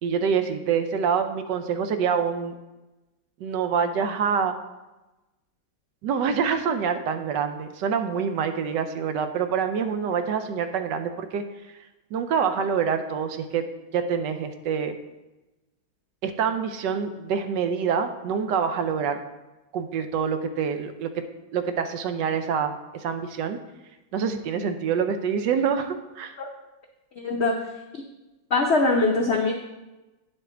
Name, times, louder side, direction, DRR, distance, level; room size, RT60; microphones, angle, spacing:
voice 1, 0.0-2.6 3.4-4.5 6.0-11.4 12.1-13.6 13.9-14.9 16.2-19.2 19.7-21.1 21.5-23.6 24.1-26.3, right 6 dB, 75° right, 8 dB, 1.2 m, -26 dB
voice 2, 27.2-27.7 27.9-28.0 28.5-29.5, left 3 dB, 90° left, 2 dB, 0.5 m, -22 dB
8.9 x 6.2 x 3.7 m, 1.0 s
omnidirectional pair, 2.0 m